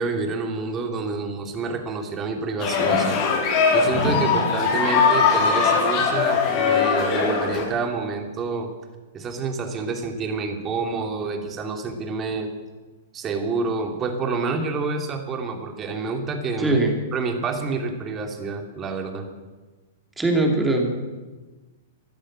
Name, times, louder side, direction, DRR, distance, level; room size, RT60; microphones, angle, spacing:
voice 1, 0.0-3.2 3.7-8.7 9.1-12.5 13.1-16.8 17.1-19.3, right 4 dB, 25° right, 4 dB, 2.7 m, -28 dB
sound 1, 2.6-7.7, left 5 dB, 45° left, 4.0 m, -20 dB
voice 2, 16.6-17.0 20.2-21.0, right 2 dB, 10° right, 1 dB, 2.9 m, -21 dB
15.0 x 12.0 x 7.6 m, 1.2 s
hypercardioid pair, 120°, 0 cm